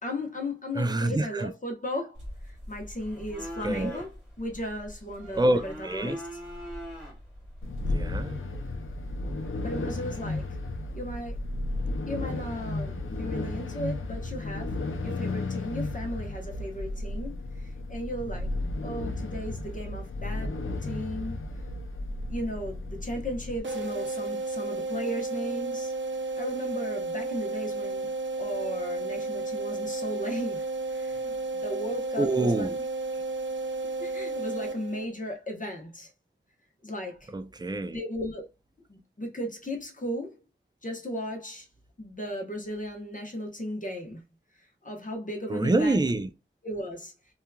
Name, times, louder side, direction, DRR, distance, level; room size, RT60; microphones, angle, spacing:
voice 1, 0.0-2.2 2.4-6.2 9.6-10.5 10.9-11.4 12.1-14.8 15.0-18.5 18.8-21.4 22.3-25.9 26.3-32.7 34.0-36.1 36.8-37.3 37.9-38.4 38.9-40.4 40.8-41.7 42.0-44.2 44.6-46.0 46.6-47.1, equal, 40° left, 0.9 m, -36 dB
voice 2, 0.7-1.5 3.6-4.0 5.3-6.2 7.9-8.6 9.2-9.4 32.2-32.8 37.3-38.0 45.5-46.3, right 2 dB, 20° right, 0.3 m, -27 dB
sound 1, 2.2-8.1, equal, ahead, 1.7 m, -42 dB
sound 2, 7.6-23.6, left 2 dB, 75° left, 0.5 m, -33 dB
sound 3, 23.6-35.3, right 2 dB, 60° right, 0.6 m, -32 dB
2.8 x 2.4 x 2.2 m
wide cardioid pair, 50°, 21 cm